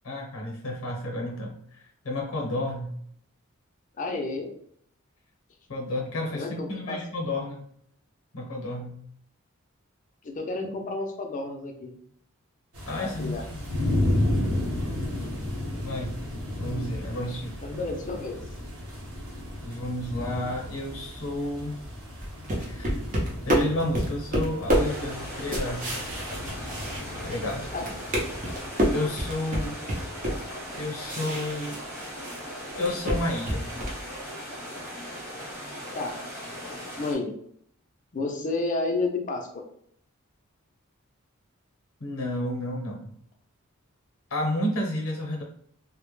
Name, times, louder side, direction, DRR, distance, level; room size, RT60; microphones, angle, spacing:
voice 1, 0.0-2.9 5.7-7.6 8.3-9.0 12.9-13.7 15.8-16.2 16.6-17.6 19.6-21.8 22.6-25.9 27.2-27.7 28.9-29.8 30.8-31.8 32.8-33.7 42.0-43.1 44.3-45.4, left 1 dB, 80° left, 0 dB, 0.7 m, -31 dB
voice 2, 4.0-4.5 6.3-7.0 10.2-11.9 13.0-13.4 17.6-18.4 27.7-28.0 36.0-36.2 37.0-37.4 38.1-39.5, left 3 dB, 35° left, 3 dB, 0.4 m, -31 dB
sound 1, 12.7-28.7, left 1 dB, 90° right, 1.0 m, -33 dB
sound 2, 22.2-27.5 27.8-32.4 32.7-34.1, equal, 40° right, 0.6 m, -28 dB
sound 3, 24.7-37.2, equal, 10° right, 0.9 m, -38 dB
2.0 x 2.0 x 3.0 m, 0.66 s
head